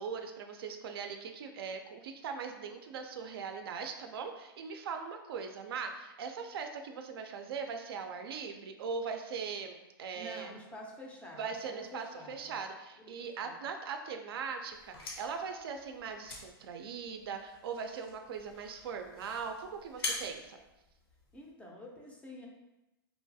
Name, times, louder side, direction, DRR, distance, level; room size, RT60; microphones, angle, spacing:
voice 1, 0.0-10.5 11.4-20.6, right 5 dB, 75° right, 5 dB, 0.4 m, -40 dB
voice 2, 10.1-12.6 13.1-13.6 21.3-22.5, left 1 dB, 10° left, -1 dB, 0.4 m, -48 dB
sound 1, 14.7-21.5, left 2 dB, 85° left, 0.7 m, -45 dB
3.0 x 2.3 x 2.6 m, 0.98 s
hypercardioid pair, 140°, 13 cm